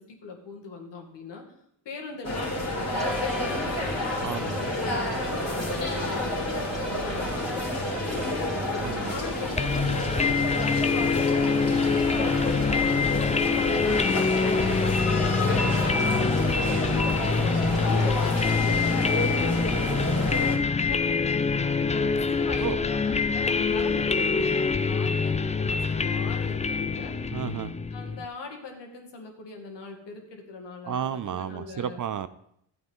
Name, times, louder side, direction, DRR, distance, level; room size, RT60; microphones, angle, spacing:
voice 1, 0.0-1.4 1.8-8.5 8.8-14.1 14.4-17.2 17.8-27.2 27.9-32.0, left 4 dB, 65° left, 2 dB, 2.2 m, -40 dB
sound 1, 2.2-20.6, left 1 dB, 30° left, 3.0 m, -30 dB
sound 2, 2.9-20.5, left 1 dB, ahead, 2.6 m, -38 dB
voice 2, 4.2-4.8 8.8-9.2 17.5-17.9 22.6-22.8 27.3-27.7 30.8-32.3, right 9 dB, 45° right, 14 dB, 0.6 m, -33 dB
sound 3, 9.6-28.3, left 4 dB, 15° left, 0.5 m, -25 dB
12.5 x 7.8 x 3.8 m, 0.72 s
supercardioid pair, 60°, 46 cm